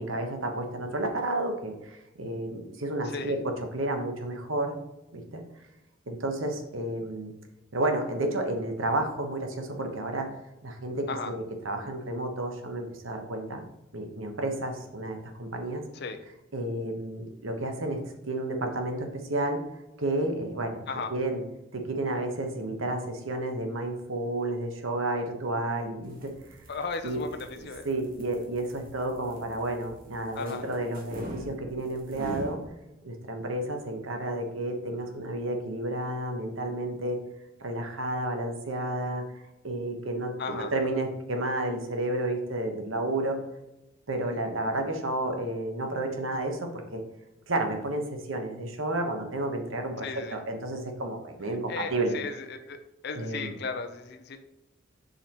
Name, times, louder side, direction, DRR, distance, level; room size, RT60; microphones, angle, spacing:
voice 1, 0.0-4.8 5.1-5.4 6.1-7.3 7.7-10.3 10.6-13.6 13.9-15.8 16.5-19.6 20.0-20.8 21.1-21.4 21.7-26.3 27.0-32.6 33.0-37.2 37.6-43.4 44.1-47.0 47.5-52.1 53.1-53.5, right 1 dB, 85° right, 4 dB, 1.2 m, -31 dB
sound 1, 25.9-32.7, equal, 45° right, 1.4 m, -43 dB
voice 2, 26.7-27.9 30.3-30.7 40.4-40.7 50.0-50.4 51.7-52.8 53.0-54.4, left 4 dB, 55° left, 7 dB, 0.6 m, -35 dB
7.1 x 5.6 x 3.0 m, 0.94 s
head